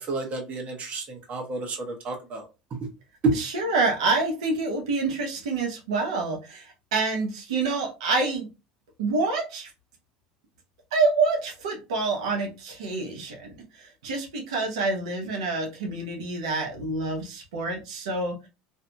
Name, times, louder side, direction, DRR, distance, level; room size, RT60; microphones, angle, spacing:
voice 1, 0.1-2.9 3.2-3.3, right 3 dB, 40° right, 0.9 m, -30 dB
voice 2, 3.3-8.5 9.0-9.7 10.9-18.5, right 3 dB, 85° right, 0.8 m, -27 dB
2.6 x 2.6 x 2.2 m
hypercardioid pair, 85°, 3 cm